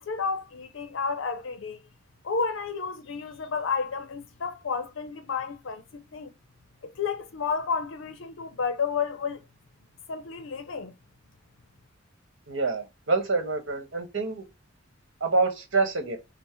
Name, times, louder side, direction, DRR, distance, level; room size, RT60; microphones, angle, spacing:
voice 1, 0.0-1.8 2.2-6.3 6.8-9.4 10.1-10.9, left 5 dB, 80° left, 0.6 m, -31 dB
voice 2, 12.5-14.4 15.2-16.2, right 3 dB, 75° right, 1.2 m, -26 dB
5.5 x 2.1 x 4.4 m
head